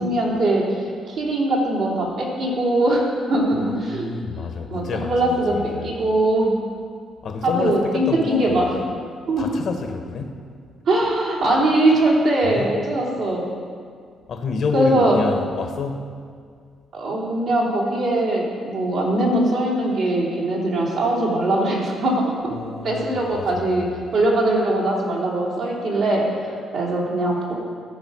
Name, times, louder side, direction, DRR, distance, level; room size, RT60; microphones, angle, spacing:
voice 1, 0.0-4.1 4.7-6.5 7.4-8.7 9.3-9.5 10.9-13.5 14.7-15.2 16.9-22.4 22.8-27.6, right 1 dB, 70° right, -4 dB, 3.0 m, -21 dB
voice 2, 3.5-5.9 7.2-8.7 9.4-10.4 12.4-12.8 14.3-16.1 22.5-23.9, left 4 dB, 60° left, 5 dB, 1.1 m, -29 dB
14.5 x 5.0 x 6.1 m, 2.1 s
cardioid pair, 90°, 0 cm